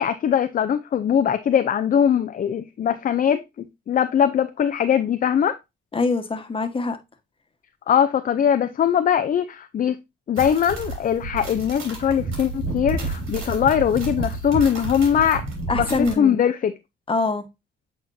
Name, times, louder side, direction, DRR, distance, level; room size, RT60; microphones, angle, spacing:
voice 1, 0.0-3.4 3.9-5.6 7.9-10.0 10.3-15.5 15.7-15.9 16.2-16.7, left 8 dB, 45° left, 0.5 m, -21 dB
voice 2, 5.9-7.0 15.7-16.4 17.1-17.4, left 3 dB, 25° left, 1.3 m, -24 dB
sound 1, 10.4-16.1, right 3 dB, 90° right, 3.1 m, -30 dB
8.3 x 4.3 x 2.6 m
cardioid pair, 90°, 20 cm